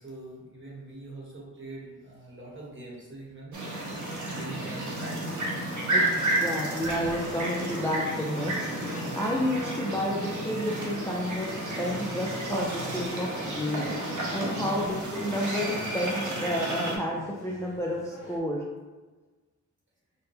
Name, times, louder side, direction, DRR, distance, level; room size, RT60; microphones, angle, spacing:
voice 1, 0.0-5.4 14.6-14.9, right 2 dB, 40° right, -5 dB, 1.1 m, -43 dB
sound 1, 3.5-17.0, right 1 dB, 70° right, 0.9 m, -32 dB
voice 2, 5.9-8.7 9.1-11.5 11.8-13.9 14.3-18.6, equal, 10° left, -3 dB, 0.4 m, -30 dB
sound 2, 6.5-18.4, left 2 dB, 85° left, 0.8 m, -46 dB
4.2 x 2.2 x 3.5 m, 1.3 s
wide cardioid pair, 115°, 31 cm